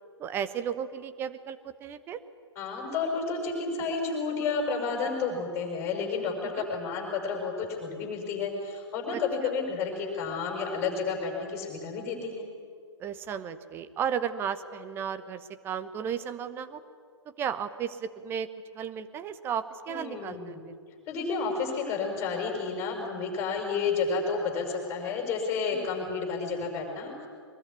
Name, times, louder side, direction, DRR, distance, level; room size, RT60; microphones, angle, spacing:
voice 1, 0.2-2.2 6.4-6.7 9.1-9.2 13.0-16.8 17.4-18.5 18.7-20.6 25.7-25.9, right 8 dB, 15° right, 12 dB, 1.0 m, -34 dB
voice 2, 2.6-12.4 19.9-20.7 21.1-27.3, left 4 dB, 15° left, 1 dB, 5.7 m, -31 dB
23.0 x 21.0 x 9.7 m, 2.1 s
figure-of-eight pair, 125°, 15 cm